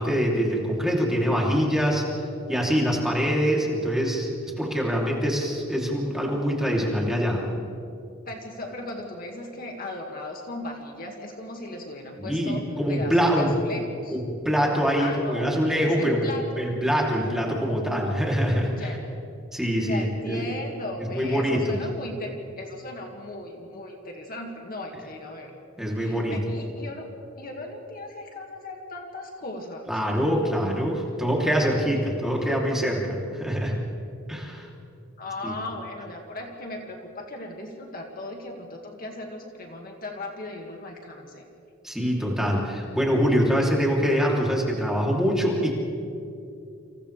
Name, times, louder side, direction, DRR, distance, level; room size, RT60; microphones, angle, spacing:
voice 1, 0.0-2.0 2.5-4.3 4.6-7.5 12.2-13.5 14.1-16.3 16.6-18.9 19.5-20.4 21.1-21.8 25.8-26.4 29.9-33.7 34.3-34.7 35.4-35.5 41.8-45.7, equal, ahead, -3 dB, 3.2 m, -24 dB
voice 2, 8.3-14.2 15.0-15.5 15.8-16.6 17.7-19.0 19.9-25.5 25.9-27.1 27.4-29.9 35.2-41.4, left 2 dB, 45° left, 1 dB, 2.1 m, -37 dB
29.5 x 27.0 x 3.4 m, 2.6 s
head